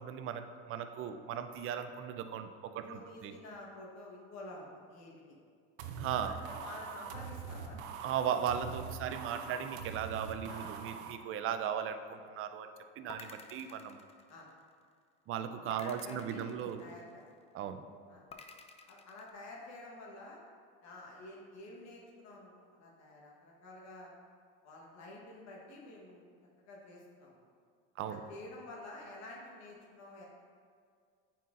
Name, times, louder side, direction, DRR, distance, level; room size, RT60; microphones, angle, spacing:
voice 1, 0.0-3.3 6.0-6.3 7.7-12.7 13.0-14.0 15.3-16.8 17.5-17.8 28.0-28.2, right 8 dB, 40° right, 8 dB, 0.5 m, -37 dB
voice 2, 2.8-5.4 6.2-8.0 10.4-10.7 14.3-14.5 15.8-17.2 18.1-18.2 18.8-20.4 20.8-24.1 24.6-26.2 26.6-27.5 28.1-30.3, left 2 dB, 55° left, -2 dB, 1.3 m, -50 dB
sound 1, 5.8-11.1, right 6 dB, 90° right, 0.6 m, -43 dB
sound 2, 13.1-14.8 15.7-17.3 18.3-19.3, left 3 dB, 20° left, 0.4 m, -52 dB
9.0 x 4.3 x 2.5 m, 2.2 s
supercardioid pair, 95°, 33 cm